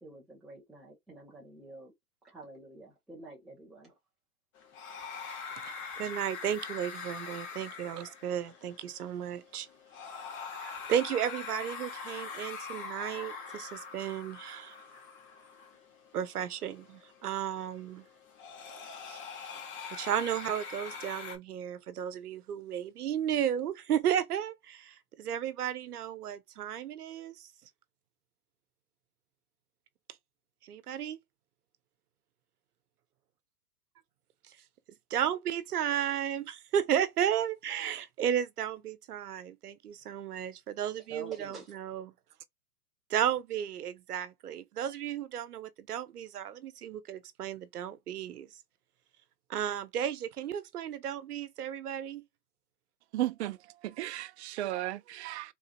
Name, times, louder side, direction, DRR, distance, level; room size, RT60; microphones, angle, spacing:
voice 1, 0.0-1.9 2.2-3.9 41.1-41.7, right 3 dB, ahead, 0.4 m, -48 dB
sound 1, 4.6-21.4, left 5 dB, 25° left, 1.1 m, -44 dB
voice 2, 5.6-9.7 10.5-14.8 16.1-18.1 19.1-19.2 19.9-27.5 30.6-31.2 35.1-42.1 43.1-48.5 49.5-52.2, right 9 dB, 80° right, 0.9 m, -34 dB
voice 3, 53.1-53.6 53.8-55.5, right 15 dB, 50° right, 0.6 m, -34 dB
3.8 x 2.8 x 2.5 m
hypercardioid pair, 125°, 45 cm